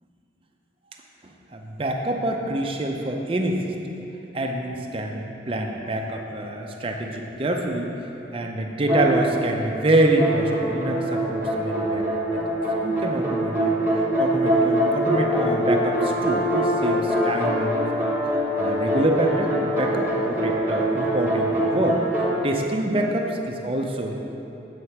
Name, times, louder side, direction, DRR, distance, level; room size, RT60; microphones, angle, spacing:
voice 1, 1.2-3.6 4.3-7.9 8.3-12.0 12.3-12.4 12.8-17.8 18.6-24.1, right 1 dB, 30° right, 2 dB, 0.5 m, -26 dB
sound 1, 8.9-9.7 10.2-22.4, right 1 dB, 10° right, 1.0 m, -23 dB
8.2 x 4.3 x 5.8 m, 3.0 s
head